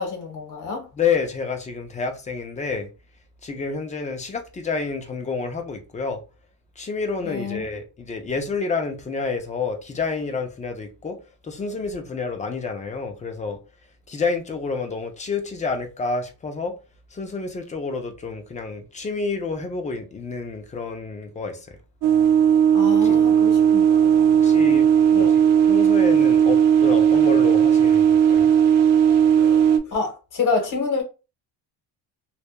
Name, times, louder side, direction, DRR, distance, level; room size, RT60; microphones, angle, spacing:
voice 1, 0.0-0.8 7.2-7.6 22.7-24.4 25.1-25.3 29.3-31.0, left 4 dB, 50° left, 1.0 m, -28 dB
voice 2, 0.9-2.9 3.4-6.2 6.8-11.2 11.4-13.6 14.1-16.8 17.1-21.8 23.0-23.2 24.4-24.9 25.1-28.5, left 4 dB, 20° left, 0.4 m, -29 dB
sound 1, 22.0-29.8, right 8 dB, 55° right, 0.5 m, -16 dB
2.7 x 2.2 x 2.2 m
cardioid pair, 130°, 40 cm